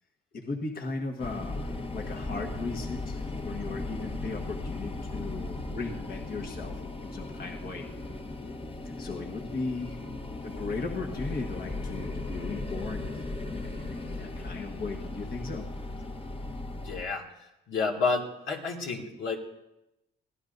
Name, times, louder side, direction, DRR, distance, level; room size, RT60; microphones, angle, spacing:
voice 1, 0.3-6.7 7.0-7.8 9.0-10.0 10.4-13.1 13.5-15.6, left 3 dB, 50° left, 1 dB, 1.6 m, -37 dB
sound 1, 1.2-17.0, left 2 dB, 30° left, 1.2 m, -37 dB
voice 2, 16.8-17.2 17.7-19.4, left 4 dB, 80° left, 0 dB, 2.4 m, -30 dB
23.5 x 16.5 x 2.7 m, 0.89 s
cardioid pair, 90°, 20 cm